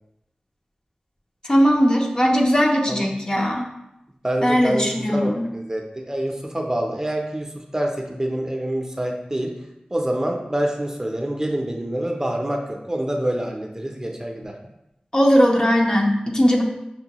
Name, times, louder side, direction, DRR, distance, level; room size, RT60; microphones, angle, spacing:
voice 1, 1.4-3.7 4.4-5.5 15.1-16.6, equal, 30° left, 0 dB, 0.6 m, -18 dB
voice 2, 4.2-9.5 9.9-14.5, right 1 dB, 20° right, 2 dB, 0.5 m, -26 dB
6.1 x 2.1 x 2.9 m, 0.87 s
wide cardioid pair, 50°, 3 cm